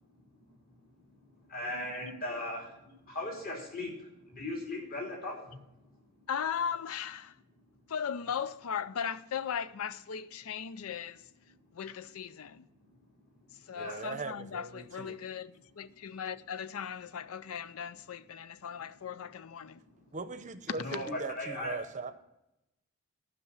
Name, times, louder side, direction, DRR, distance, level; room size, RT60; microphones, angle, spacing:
voice 1, 1.5-2.6 3.1-3.9 4.4-5.4 13.8-14.0 20.8-21.1 21.3-21.8, left 1 dB, 40° left, 3.0 m, -37 dB
voice 2, 6.3-7.4 7.9-11.3 11.7-12.6 13.7-19.8, left 7 dB, 70° left, 0.5 m, -37 dB
voice 3, 13.7-15.2 20.1-22.1, right 3 dB, 35° right, 0.7 m, -40 dB
11.5 x 5.7 x 7.2 m
head